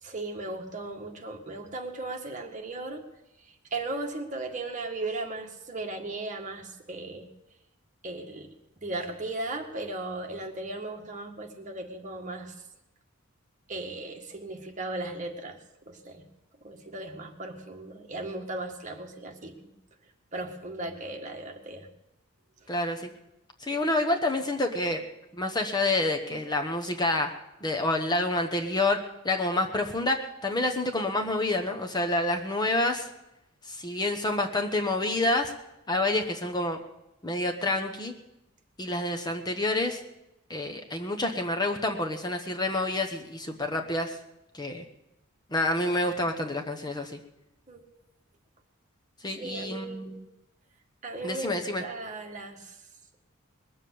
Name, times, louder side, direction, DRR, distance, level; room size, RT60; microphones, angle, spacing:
voice 1, 0.0-3.0 3.7-7.3 8.0-8.5 8.8-12.5 13.7-15.6 15.9-16.2 16.6-19.7 20.3-21.9 47.7-47.8 49.4-50.1 51.0-52.8, right 2 dB, 35° right, 2 dB, 1.8 m, -36 dB
voice 2, 22.7-23.1 23.6-25.0 25.4-27.3 27.6-33.1 33.7-35.5 35.9-36.8 37.2-38.1 38.8-40.0 40.5-44.2 44.5-44.8 45.5-47.2 49.2-50.2 51.2-51.8, left 2 dB, 20° left, 4 dB, 1.1 m, -28 dB
21.0 x 7.5 x 8.5 m, 0.94 s
head